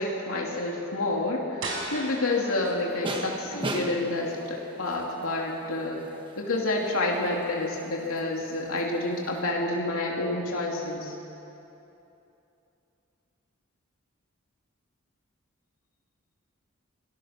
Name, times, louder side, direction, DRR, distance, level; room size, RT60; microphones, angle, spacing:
voice 1, 0.0-1.6 1.9-6.0 6.4-11.1, left 2 dB, 85° left, -2 dB, 2.9 m, -29 dB
sound 1, 1.6-7.2, right 2 dB, 65° right, 5.0 m, -41 dB
sound 2, 1.7-9.5, right 2 dB, 25° right, 1.4 m, -40 dB
28.0 x 20.5 x 6.0 m, 2.9 s
head